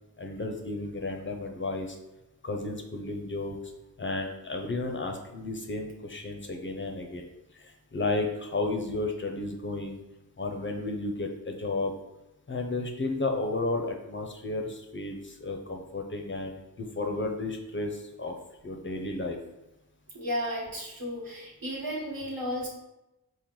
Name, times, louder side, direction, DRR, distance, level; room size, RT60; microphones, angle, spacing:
voice 1, 0.2-2.0 2.4-3.6 4.0-7.3 7.5-10.0 10.4-11.9 12.5-18.3 18.6-19.4, left 2 dB, 30° left, 2 dB, 0.6 m, -33 dB
voice 2, 20.1-22.7, equal, 65° right, -3 dB, 1.3 m, -33 dB
4.6 x 2.1 x 3.7 m, 0.96 s
cardioid pair, 60°, 38 cm